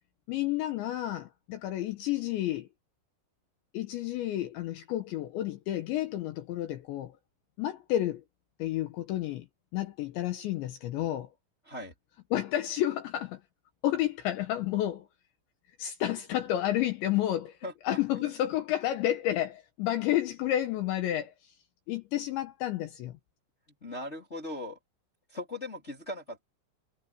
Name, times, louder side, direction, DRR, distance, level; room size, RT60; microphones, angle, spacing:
voice 1, 0.3-2.7 3.7-7.2 7.6-8.2 8.6-9.5 9.7-11.3 12.3-13.4 13.8-15.1 15.8-17.6 17.8-21.5 21.9-23.2, left 13 dB, 70° left, 3.2 m, -30 dB
voice 2, 17.6-18.3 23.8-24.8 25.3-26.5, left 1 dB, 15° left, 2.9 m, -39 dB
omnidirectional pair, 5.8 m